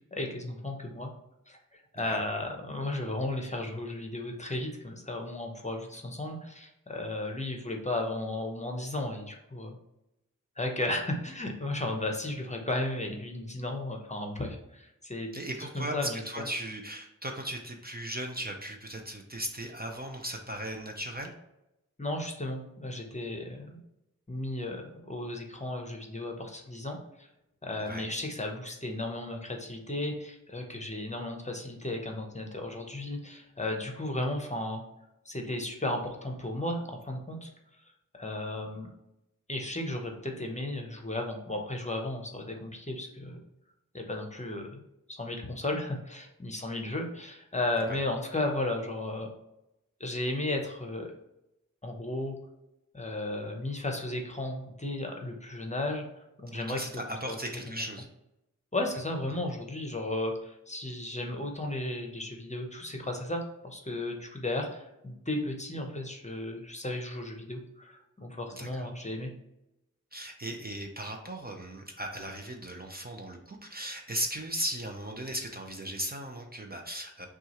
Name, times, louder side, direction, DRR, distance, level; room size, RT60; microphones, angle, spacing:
voice 1, 0.1-1.1 1.5-9.8 10.6-15.3 15.7-16.5 22.0-23.8 24.3-27.3 27.6-34.8 35.3-37.5 38.1-38.9 39.5-43.4 43.9-44.8 45.1-49.3 50.0-51.1 51.8-52.3 52.9-56.0 56.4-56.8 57.3-57.4 57.7-57.8 58.7-69.3, left 1 dB, 20° left, 2 dB, 0.8 m, -34 dB
voice 2, 15.3-21.3 27.8-28.1 47.8-48.0 56.5-58.1 68.5-68.9 70.1-77.3, right 1 dB, 30° right, 2 dB, 0.6 m, -37 dB
5.9 x 2.4 x 3.0 m, 0.89 s
wide cardioid pair, 60°, 33 cm